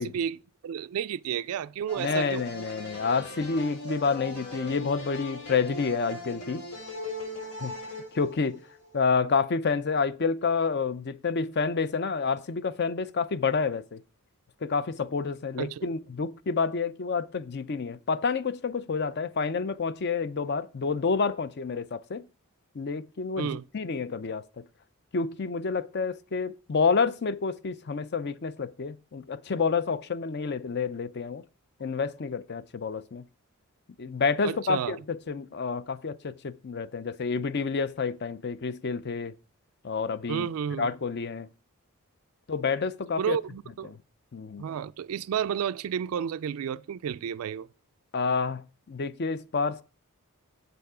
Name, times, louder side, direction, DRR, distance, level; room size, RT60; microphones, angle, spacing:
voice 1, 0.0-2.4 15.6-15.9 23.4-23.6 34.4-35.0 40.3-40.9 43.2-43.9 44.6-47.7, right 8 dB, 75° right, 0.3 m, -31 dB
sound 1, 1.9-8.9, left 1 dB, 90° left, 3.3 m, -39 dB
voice 2, 2.0-6.6 7.6-7.8 8.1-8.6 8.9-14.0 14.6-22.3 22.7-24.6 25.1-31.4 31.8-33.2 34.0-39.3 39.8-40.5 40.8-41.5 42.5-43.4 43.9-44.0 44.3-44.7 48.1-49.8, left 5 dB, 50° left, 0.5 m, -29 dB
7.9 x 7.0 x 4.9 m
head